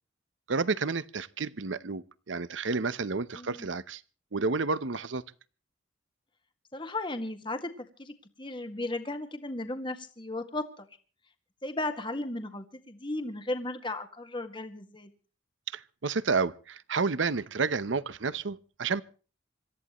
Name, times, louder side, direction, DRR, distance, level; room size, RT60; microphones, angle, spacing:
voice 1, 0.5-4.0 4.3-5.2 15.7-19.0, right 4 dB, 75° right, 0.8 m, -30 dB
voice 2, 3.4-3.7 6.7-10.9 11.6-15.1, left 2 dB, 25° left, 1.7 m, -35 dB
26.5 x 13.5 x 3.1 m
head